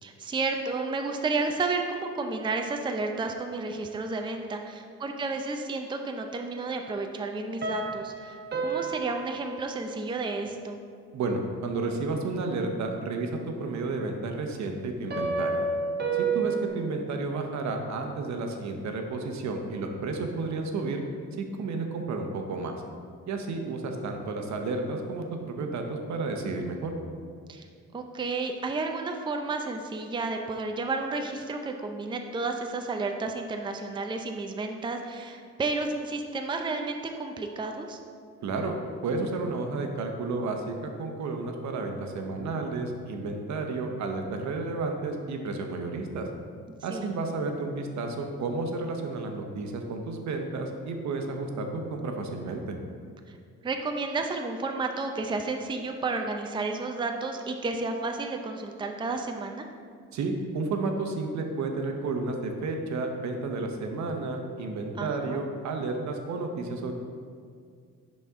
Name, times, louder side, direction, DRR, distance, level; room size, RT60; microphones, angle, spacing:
voice 1, 0.0-8.4 8.6-10.8 27.5-27.6 27.9-38.0 46.9-47.1 53.6-59.7 65.0-65.4, right 3 dB, 15° right, 4 dB, 0.5 m, -31 dB
sound 1, 7.6-10.2 15.1-16.7, right 4 dB, 35° right, 1.0 m, -30 dB
voice 2, 11.1-15.7 16.1-21.0 21.4-22.8 23.3-26.9 38.4-38.8 39.0-46.3 46.8-52.8 60.1-66.9, right 3 dB, 65° right, 4 dB, 0.9 m, -32 dB
10.5 x 4.2 x 3.6 m, 2.2 s
cardioid pair, 90°, 30 cm